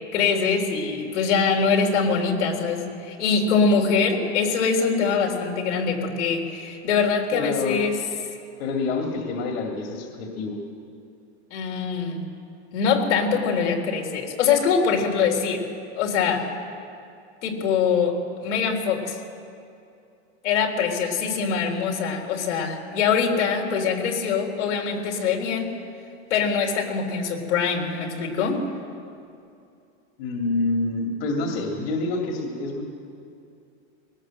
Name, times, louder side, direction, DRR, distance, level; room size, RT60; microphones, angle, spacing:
voice 1, 0.1-8.0 11.5-12.2 12.7-15.6 16.0-16.5 17.4-19.2 20.4-25.8 26.3-28.6, left 5 dB, 90° left, 1 dB, 3.7 m, -23 dB
voice 2, 7.3-7.8 8.6-10.6 30.2-32.8, left 3 dB, 60° left, 2 dB, 2.5 m, -27 dB
19.0 x 18.5 x 7.6 m, 2.5 s
supercardioid pair, 155°, 34 cm